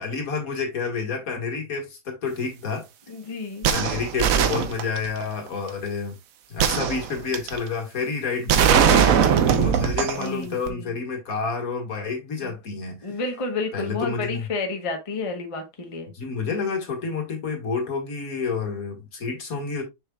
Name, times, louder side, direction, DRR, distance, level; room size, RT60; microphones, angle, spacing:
voice 1, 0.0-2.9 3.7-6.2 6.5-13.2 13.7-14.5 16.1-19.8, left 5 dB, 65° left, 2.1 m, -29 dB
voice 2, 3.1-3.7 10.2-10.9 12.4-12.5 13.0-16.1, left 3 dB, 25° left, 1.0 m, -31 dB
sound 1, 3.6-5.2 6.6-7.6 8.5-10.3 10.7-10.8, right 8 dB, 70° right, 1.1 m, -20 dB
6.5 x 6.3 x 2.3 m
omnidirectional pair, 1.6 m